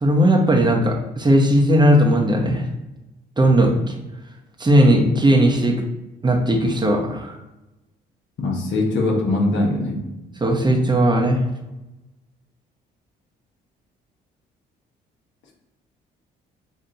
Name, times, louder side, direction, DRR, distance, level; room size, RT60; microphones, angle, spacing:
voice 1, 0.0-2.7 3.4-3.9 4.6-5.8 6.2-7.4 10.4-11.4, right 1 dB, 20° right, 2 dB, 0.9 m, -17 dB
voice 2, 8.4-10.0, left 2 dB, 65° left, 0 dB, 1.2 m, -21 dB
6.9 x 2.4 x 2.9 m, 0.98 s
hypercardioid pair, 55°, 21 cm